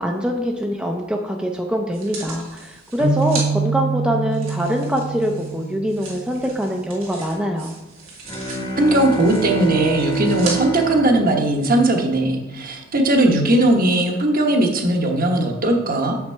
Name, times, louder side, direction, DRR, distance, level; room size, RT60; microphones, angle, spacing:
voice 1, 0.0-7.7, equal, 5° right, 1 dB, 0.5 m, -24 dB
sound 1, 1.9-3.5 4.3-10.6 11.2-11.3, right 4 dB, 90° right, 2.2 m, -36 dB
sound 2, 3.0-6.5, right 4 dB, 85° left, 2.7 m, -25 dB
Bowed string instrument, 8.2-12.5, right 4 dB, 25° left, 1.0 m, -27 dB
voice 2, 8.8-16.1, right 1 dB, 45° right, 2 dB, 1.1 m, -18 dB
6.6 x 5.8 x 4.5 m, 1.0 s
head